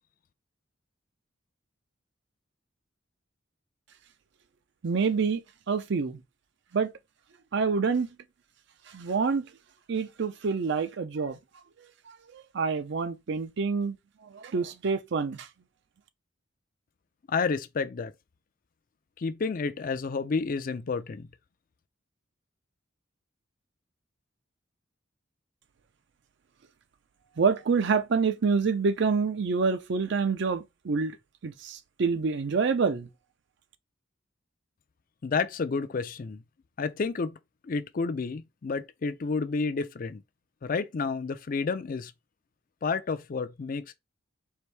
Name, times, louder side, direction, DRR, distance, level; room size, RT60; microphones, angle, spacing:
voice 1, 4.8-6.2 6.7-6.9 7.5-8.1 8.9-9.5 9.9-11.4 12.1-14.0 14.2-15.5 27.4-31.2 31.4-33.1, right 5 dB, 60° right, 0.5 m, -27 dB
voice 2, 17.3-18.1 19.2-21.3 35.2-36.4 36.8-37.4 37.6-40.2 40.6-42.1 42.8-43.9, left 4 dB, 45° left, 0.4 m, -30 dB
4.5 x 2.6 x 3.3 m
head